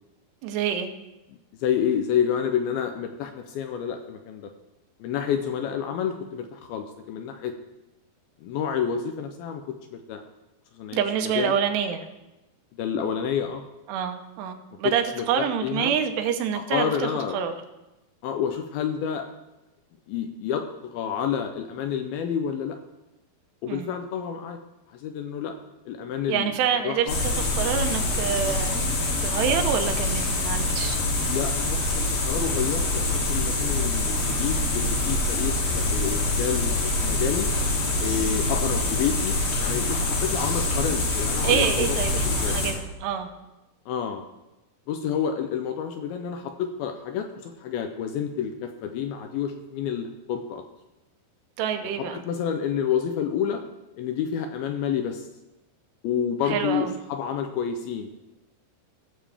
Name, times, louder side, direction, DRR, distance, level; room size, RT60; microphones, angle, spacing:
voice 1, 0.4-0.9 10.9-12.1 13.9-17.5 23.7-24.0 26.3-28.9 29.2-31.0 41.4-43.3 51.6-52.2 56.4-57.0, right 8 dB, 85° right, 6 dB, 3.0 m, -27 dB
voice 2, 1.5-4.5 5.0-7.5 8.4-10.2 10.7-11.5 12.7-13.6 14.8-15.9 16.7-17.4 18.2-19.3 20.1-20.6 20.9-22.8 23.6-24.6 24.9-25.5 25.9-26.5 26.8-27.2 31.2-37.5 38.0-42.6 43.9-44.2 44.9-50.6 52.0-53.6 54.0-55.3 56.0-58.1, left 8 dB, 80° left, 6 dB, 2.2 m, -29 dB
sound 1, 27.1-42.7, left 2 dB, 60° left, 3.5 m, -25 dB
18.5 x 7.1 x 3.4 m, 0.99 s
omnidirectional pair, 4.8 m